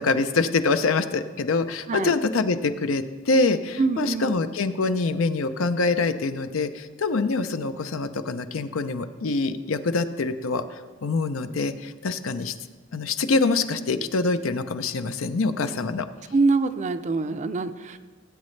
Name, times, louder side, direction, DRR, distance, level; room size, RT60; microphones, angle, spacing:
voice 1, 0.0-10.6 11.0-12.5 12.9-16.1, left 3 dB, 85° left, 10 dB, 0.6 m, -25 dB
voice 2, 3.8-4.4 16.3-18.0, right 3 dB, 35° right, 11 dB, 0.5 m, -24 dB
17.5 x 8.1 x 3.2 m, 1.4 s
head